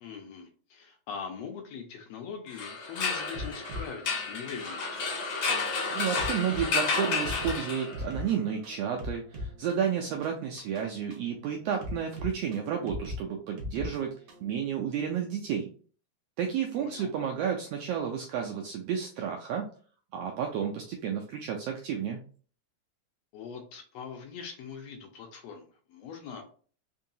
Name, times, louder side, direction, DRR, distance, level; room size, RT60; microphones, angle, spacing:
voice 1, 0.0-5.0 16.8-17.1 23.3-26.5, left 6 dB, 80° left, 4 dB, 1.5 m, -42 dB
sound 1, 2.5-8.2, left 4 dB, 60° left, 1.2 m, -31 dB
sound 2, 3.3-14.6, left 1 dB, 65° right, 1.2 m, -41 dB
voice 2, 5.9-14.1 14.4-15.7 16.4-19.7 20.1-22.2, right 8 dB, 85° right, 2 dB, 1.4 m, -31 dB
4.5 x 2.8 x 2.6 m, 0.42 s
omnidirectional pair, 3.4 m